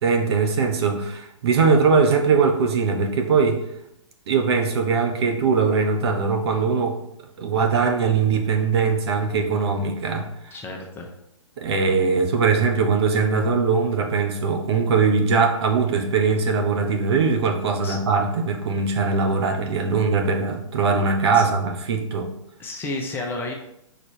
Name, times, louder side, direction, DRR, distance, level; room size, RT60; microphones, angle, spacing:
voice 1, 0.0-3.6 4.3-7.0 7.4-10.3 11.6-22.3, right 5 dB, 55° right, 4 dB, 1.0 m, -21 dB
voice 2, 10.5-11.1 17.8-18.0 21.3-21.4 22.6-23.5, left 2 dB, 15° left, 1 dB, 0.8 m, -31 dB
5.1 x 4.1 x 4.4 m, 0.79 s
hypercardioid pair, 130°, 16 cm